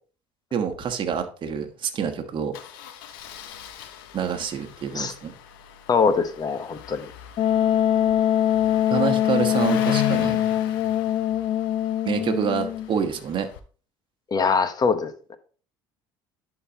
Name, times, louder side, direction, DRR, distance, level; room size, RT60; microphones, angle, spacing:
voice 1, 0.5-2.6 4.1-5.3 8.9-10.4 12.0-13.5, right 7 dB, 45° right, 6 dB, 1.2 m, -27 dB
Engine starting, 0.6-1.2 1.5-1.6 2.5-13.6, left 11 dB, 85° left, 0.7 m, -38 dB
voice 2, 5.9-7.1 14.3-15.4, left 5 dB, 35° left, 10 dB, 1.0 m, -23 dB
Wind instrument woodwind instrument, 7.4-12.9, left 11 dB, 60° left, 0.5 m, -23 dB
11.0 x 4.0 x 2.9 m, 0.40 s
supercardioid pair, 80°, 11 cm